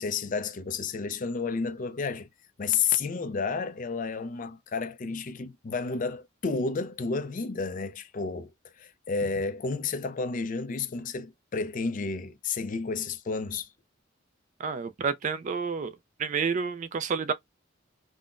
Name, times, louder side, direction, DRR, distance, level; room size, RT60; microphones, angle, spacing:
voice 1, 0.0-2.3 2.6-13.7, left 5 dB, 40° left, 0.4 m, -31 dB
voice 2, 14.6-15.9 16.2-17.3, right 5 dB, 35° right, 0.3 m, -29 dB
3.7 x 2.1 x 2.4 m
head